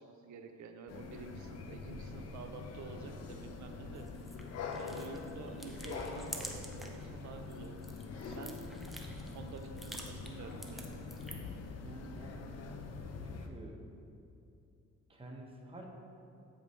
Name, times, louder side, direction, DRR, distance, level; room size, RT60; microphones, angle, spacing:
voice 1, 0.0-4.1 4.8-7.9 8.1-8.6 9.3-10.9, right 5 dB, 70° right, 5 dB, 0.7 m, -49 dB
sound 1, 0.9-13.5, left 4 dB, 55° left, 0.6 m, -44 dB
sound 2, 3.9-7.0 7.4-11.6, equal, ahead, 0.7 m, -48 dB
voice 2, 11.8-12.6 13.2-13.8 15.1-15.8, right 1 dB, 20° right, -1 dB, 1.0 m, -49 dB
8.2 x 5.0 x 3.2 m, 2.6 s
cardioid pair, 90°, 30 cm